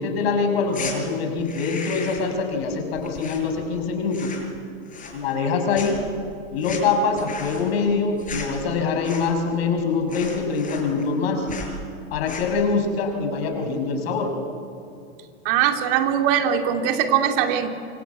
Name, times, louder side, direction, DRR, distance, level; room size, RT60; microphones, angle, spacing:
voice 1, 0.0-4.3 5.1-6.0 6.5-11.5 12.1-14.3, left 4 dB, 60° left, 5 dB, 5.9 m, -24 dB
sound 1, 0.7-1.0 1.4-2.4 2.6-3.8 4.1-4.6 4.9-5.5 5.7-9.5 9.8-9.9 10.1-11.2 11.5-11.7 12.1-12.6, left 5 dB, 20° left, 6.5 m, -36 dB
voice 2, 15.4-17.7, right 9 dB, 50° right, 5 dB, 2.8 m, -21 dB
26.0 x 25.5 x 8.4 m, 2.5 s
hypercardioid pair, 105°, 35 cm